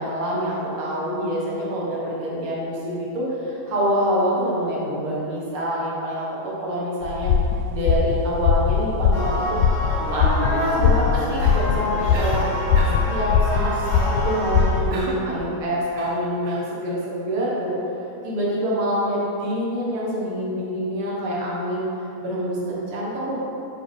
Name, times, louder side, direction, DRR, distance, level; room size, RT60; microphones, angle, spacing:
voice 1, 0.0-7.3 7.7-9.6 10.1-12.4 13.1-17.8 18.2-21.9 22.2-23.4, equal, 55° right, -5 dB, 1.6 m, -26 dB
sound 1, 7.0-15.0, left 6 dB, 85° left, 2.0 m, -21 dB
sound 2, 9.1-14.7, left 1 dB, 60° left, 1.3 m, -28 dB
Cough, 11.4-11.7 12.1-12.4 12.8-13.1 14.9-15.3 15.9-16.7, right 2 dB, 80° right, 2.2 m, -34 dB
7.6 x 5.4 x 3.5 m, 2.8 s
omnidirectional pair, 3.5 m